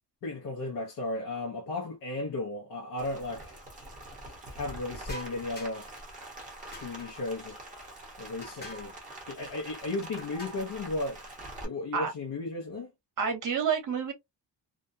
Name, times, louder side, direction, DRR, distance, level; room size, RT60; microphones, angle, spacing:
voice 1, 0.2-3.6 4.5-5.9 6.7-7.6 8.2-8.9 9.3-11.2 11.6-12.9, left 2 dB, 60° left, 0.8 m, -35 dB
Rain, 3.0-11.6, right 1 dB, 20° right, 0.9 m, -45 dB
sound 1, 5.0-6.0 6.7-7.3 8.4-9.0 10.0-10.8, equal, 25° left, 0.8 m, -45 dB
voice 2, 13.2-14.1, right 6 dB, 50° right, 0.9 m, -28 dB
2.4 x 2.1 x 2.5 m
wide cardioid pair, 180°, 41 cm